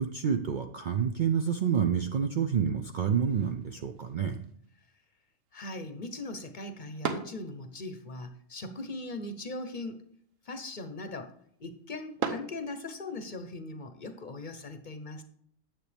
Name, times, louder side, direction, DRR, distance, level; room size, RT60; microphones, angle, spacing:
voice 1, 0.0-4.4, right 7 dB, 55° right, 5 dB, 0.5 m, -28 dB
sound 1, 3.3-13.3, right 5 dB, 85° right, 1.4 m, -43 dB
voice 2, 5.5-10.0 10.4-11.3 11.6-15.2, left 2 dB, 45° left, 8 dB, 0.8 m, -40 dB
9.5 x 7.6 x 3.4 m, 0.65 s
omnidirectional pair, 1.3 m